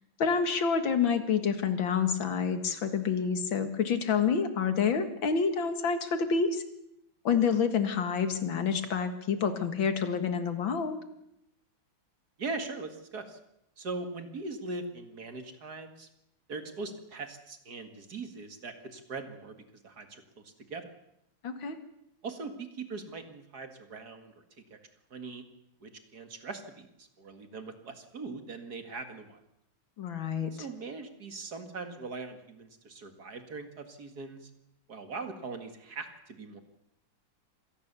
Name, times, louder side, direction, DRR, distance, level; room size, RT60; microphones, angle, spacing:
voice 1, 0.2-6.6 7.2-11.0 21.4-21.8 30.0-30.5, left 6 dB, 70° left, 8 dB, 2.5 m, -28 dB
voice 2, 12.4-13.4 13.8-16.1 16.5-19.6 19.8-20.8 22.2-24.3 24.7-24.8 25.1-25.4 25.8-29.4 30.5-34.5 34.9-36.6, right 3 dB, 50° right, 7 dB, 2.5 m, -41 dB
26.0 x 18.5 x 6.9 m, 0.80 s
omnidirectional pair, 2.2 m